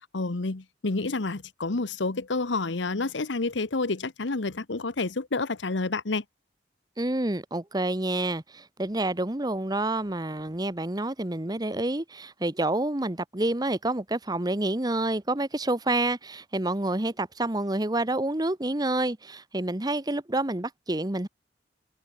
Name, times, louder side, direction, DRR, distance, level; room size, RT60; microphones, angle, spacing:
voice 1, 0.1-6.2, left 3 dB, 80° left, 1.1 m, -29 dB
voice 2, 7.0-21.3, right 2 dB, 20° right, 1.1 m, -28 dB
head